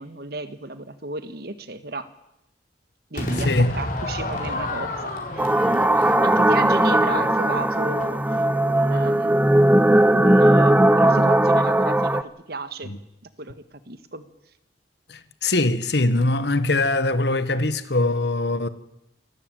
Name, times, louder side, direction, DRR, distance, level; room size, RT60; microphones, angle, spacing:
voice 1, 0.0-2.1 3.1-9.4 10.1-12.9 13.4-14.3, right 2 dB, 60° right, 1.6 m, -33 dB
Crowd / Fireworks, 3.1-8.4, left 1 dB, 45° left, 4.3 m, -31 dB
voice 2, 3.3-3.7 5.6-5.8 12.8-13.0 15.1-18.7, left 2 dB, 65° left, 1.4 m, -22 dB
sound 1, 5.4-12.2, right 1 dB, 10° right, 0.7 m, -18 dB
27.5 x 14.0 x 9.1 m
head